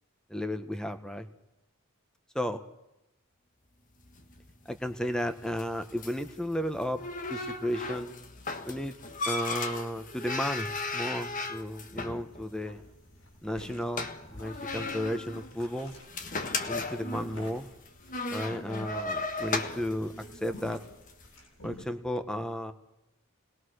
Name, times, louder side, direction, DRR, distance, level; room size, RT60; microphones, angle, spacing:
voice 1, 0.3-1.3 2.3-2.6 4.7-8.1 8.6-8.9 9.2-12.8 13.4-15.9 16.7-17.7 18.3-20.1 20.4-20.8 21.6-22.7, equal, 5° left, 9 dB, 1.4 m, -33 dB
sound 1, 4.0-21.3, left 3 dB, 35° left, 1.6 m, -37 dB
sound 2, 12.2-12.4 12.6-21.9, left 1 dB, 70° left, 7.9 m, -50 dB
29.0 x 20.5 x 6.5 m, 0.91 s
head